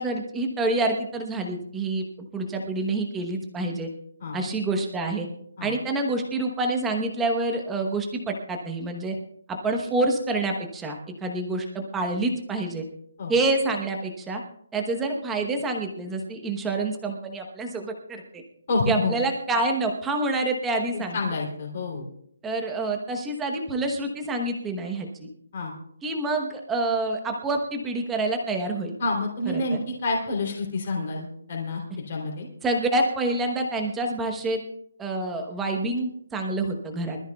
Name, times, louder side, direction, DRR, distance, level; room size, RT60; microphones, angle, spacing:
voice 1, 0.0-2.0 2.3-3.9 4.3-5.3 5.6-9.2 9.5-12.8 13.3-14.4 14.7-18.4 18.9-21.2 22.4-25.3 26.0-29.0 29.5-29.8 32.6-34.6 35.0-37.2, right 2 dB, 5° right, 3 dB, 1.0 m, -27 dB
voice 2, 18.7-19.1 20.9-22.1 25.5-25.7 29.0-32.5, left 3 dB, 30° left, -2 dB, 3.1 m, -28 dB
25.0 x 13.5 x 2.3 m, 0.69 s
hypercardioid pair, 180°, 0 cm